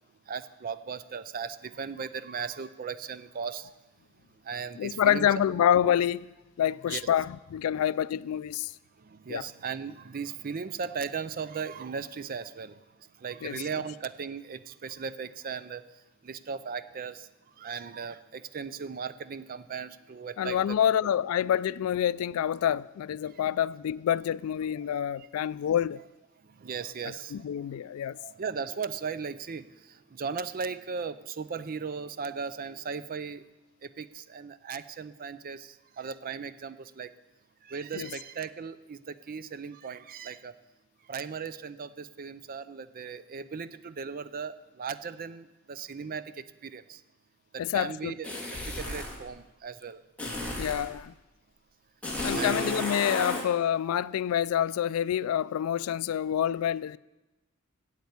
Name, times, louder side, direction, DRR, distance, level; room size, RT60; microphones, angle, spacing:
voice 1, 0.3-3.7 4.5-5.3 6.9-7.0 9.1-12.7 13.2-15.8 16.2-17.3 17.6-20.8 26.6-27.5 28.2-29.7 30.1-33.4 34.0-37.1 37.7-40.5 41.1-46.2 46.6-47.0 47.7-48.3 48.8-50.0 52.3-52.7, right 6 dB, 45° right, 0.5 m, -37 dB
voice 2, 4.8-6.3 6.6-8.7 9.3-9.5 13.4-13.6 20.4-26.0 27.3-28.2 37.9-38.1 47.6-48.2 50.6-51.1 52.2-57.0, left 9 dB, 85° left, 0.3 m, -27 dB
sound 1, 48.2-49.2 50.2-50.9 52.0-53.5, left 1 dB, 5° left, 2.0 m, -33 dB
8.5 x 8.2 x 8.1 m
head